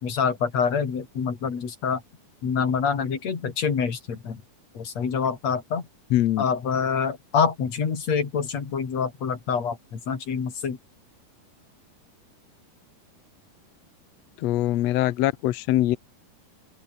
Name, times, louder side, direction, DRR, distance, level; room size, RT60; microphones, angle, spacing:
voice 1, 0.0-2.0 2.4-4.4 4.7-5.8 6.4-10.8, left 6 dB, 45° left, 4.3 m, -26 dB
voice 2, 6.1-6.4 14.4-16.0, left 14 dB, 85° left, 1.5 m, -22 dB
open air
omnidirectional pair, 4.4 m